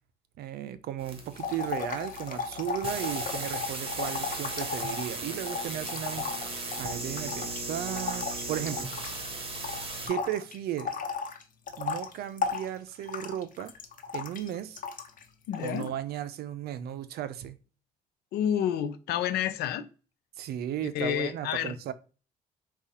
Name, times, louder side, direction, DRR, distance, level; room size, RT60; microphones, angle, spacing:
voice 1, 0.4-8.9 10.1-11.0 11.8-13.7 14.1-14.8 15.6-17.6 20.4-21.9, right 11 dB, 75° right, 0.5 m, -35 dB
sound 1, 1.0-10.1, right 2 dB, 35° right, 1.3 m, -37 dB
sound 2, 1.3-9.3 9.5-15.2 15.5-15.9, left 6 dB, 55° left, 0.9 m, -35 dB
voice 2, 15.5-15.9 18.3-19.9 20.9-21.7, left 9 dB, 80° left, 0.6 m, -29 dB
4.8 x 2.4 x 4.1 m
supercardioid pair, 65°, 17 cm